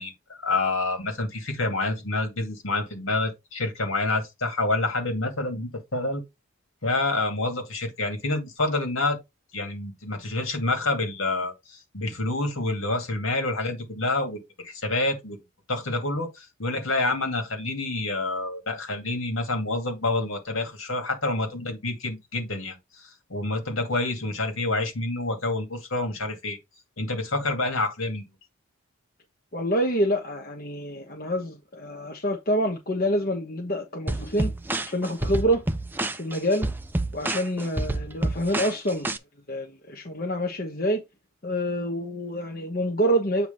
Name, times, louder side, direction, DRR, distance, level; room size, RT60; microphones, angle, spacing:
voice 1, 0.0-6.2 6.8-9.2 9.5-15.4 15.7-26.6 27.0-28.2, left 2 dB, 70° left, 2.3 m, -28 dB
voice 2, 29.5-34.5 34.9-35.6 36.2-36.7 37.1-39.1 39.5-41.0 41.4-43.5, equal, 45° left, 1.1 m, -27 dB
sound 1, 34.1-39.2, right 2 dB, 10° right, 0.4 m, -29 dB
8.2 x 3.0 x 5.3 m
head